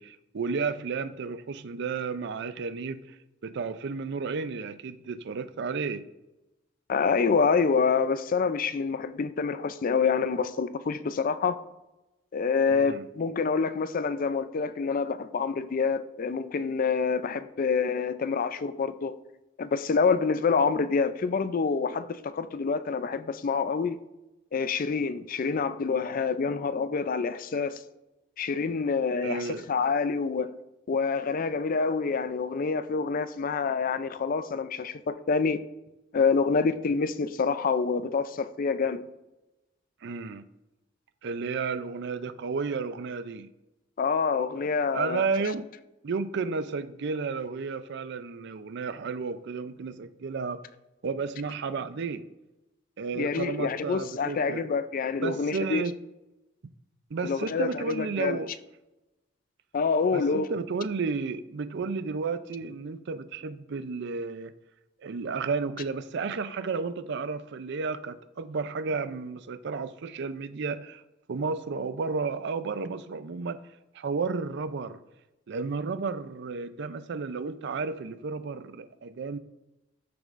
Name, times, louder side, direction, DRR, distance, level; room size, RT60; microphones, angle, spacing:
voice 1, 0.0-3.2 3.4-6.0 12.7-13.1 29.2-29.7 40.0-40.5 41.2-43.5 44.9-45.7 46.0-50.6 51.0-52.2 53.0-54.6 55.2-55.9 57.1-58.5 60.1-64.5 65.0-71.0 71.3-73.6 73.9-75.0 75.5-79.4, right 4 dB, 60° right, 0.5 m, -32 dB
voice 2, 6.9-11.6 12.3-19.2 19.6-24.0 24.5-27.8 28.4-30.5 30.9-35.6 36.1-39.0 44.0-45.2 53.1-55.8 57.2-58.4 59.7-60.5, left 5 dB, 45° left, 0.4 m, -27 dB
13.5 x 6.8 x 2.5 m
head